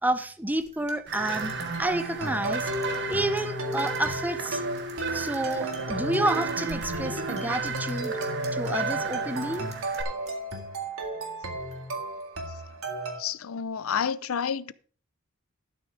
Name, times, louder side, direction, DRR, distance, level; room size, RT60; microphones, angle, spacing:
voice 1, 0.0-1.5 1.8-2.7 3.1-4.6 5.1-8.2 8.5-9.7, right 1 dB, 10° right, 0.7 m, -29 dB
sound 1, 0.6-8.7 9.0-10.0 10.3-12.7, right 1 dB, 35° right, 2.6 m, -50 dB
sound 2, 1.1-10.0, right 4 dB, 55° right, 1.5 m, -34 dB
sound 3, 1.8-13.2, right 2 dB, 75° right, 2.1 m, -34 dB
voice 2, 13.2-14.7, left 7 dB, 75° left, 0.5 m, -29 dB
12.5 x 6.2 x 4.8 m
head